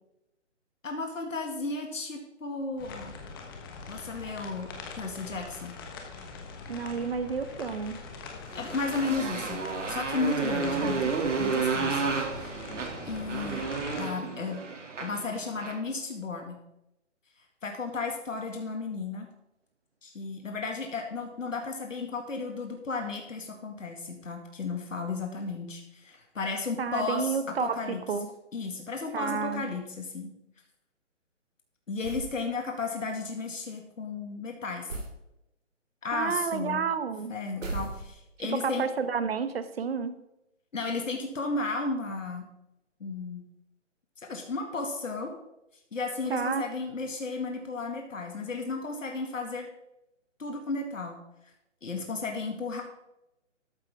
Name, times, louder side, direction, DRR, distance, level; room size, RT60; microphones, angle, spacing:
voice 1, 0.8-3.1 3.9-4.7 5.0-5.8 8.5-11.1 11.4-12.5 13.0-13.7 14.0-14.6 15.0-16.6 17.6-19.3 20.0-28.0 28.5-30.3 31.9-34.9 36.0-36.8 37.3-38.9 40.7-42.4 43.0-43.5 44.3-45.3 45.9-49.7 50.4-51.2 51.8-52.8, left 3 dB, 90° left, 3 dB, 2.2 m, -34 dB
sound 1, 2.8-14.0, left 4 dB, 20° left, 1.2 m, -43 dB
voice 2, 6.7-8.0 10.8-11.0 26.8-28.3 29.1-29.6 36.1-37.3 38.6-40.1 46.3-46.7, right 6 dB, 55° right, 11 dB, 1.2 m, -30 dB
Motorcycle, 8.5-15.9, right 4 dB, 70° right, 2.6 m, -31 dB
sound 2, 32.0-32.4 34.9-35.2 37.6-38.4, right 2 dB, 90° right, 3.1 m, -36 dB
13.0 x 9.9 x 3.6 m, 0.88 s
hypercardioid pair, 165°, 37 cm